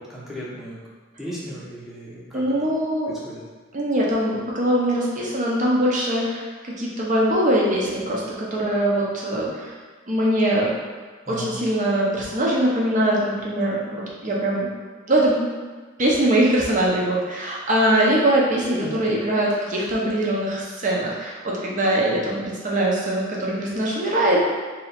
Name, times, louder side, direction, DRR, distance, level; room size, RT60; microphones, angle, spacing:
voice 1, 0.1-0.8 1.2-2.4 3.0-3.4 11.3-11.6 18.7-18.9, equal, ahead, -7 dB, 0.8 m, -35 dB
voice 2, 2.3-3.1 3.7-9.7 10.1-10.7 11.3-14.7 15.1-15.5 16.0-24.4, right 1 dB, 40° right, -4 dB, 0.8 m, -22 dB
3.0 x 2.8 x 4.2 m, 1.5 s
head